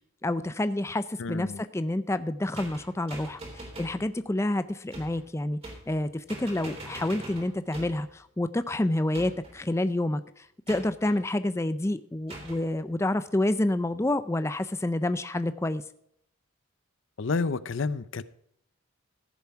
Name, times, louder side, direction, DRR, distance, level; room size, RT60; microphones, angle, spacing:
voice 1, 0.2-15.8, left 1 dB, 15° left, 13 dB, 0.4 m, -28 dB
voice 2, 1.2-1.6 17.2-18.2, left 4 dB, 70° left, 17 dB, 0.6 m, -29 dB
sound 1, 2.5-4.0 4.9-5.2 5.6-6.0 6.3-8.1 9.1-9.6 10.7-11.2 12.3-12.6, right 1 dB, 30° right, 3.3 m, -42 dB
15.5 x 7.1 x 4.5 m, 0.70 s
head